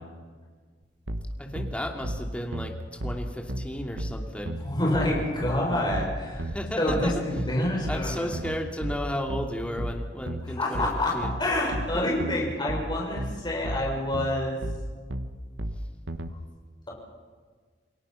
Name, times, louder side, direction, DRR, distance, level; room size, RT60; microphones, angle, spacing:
sound 1, 1.1-16.3, right 1 dB, 85° right, 1.4 m, -33 dB
voice 1, 1.4-4.7 6.4-7.4 7.9-10.9 11.1-11.3, equal, 5° left, 2 dB, 2.7 m, -33 dB
voice 2, 4.6-6.4 6.8-8.3 10.4-14.6, left 1 dB, 25° left, -2 dB, 6.6 m, -27 dB
29.0 x 21.5 x 5.8 m, 1.5 s
head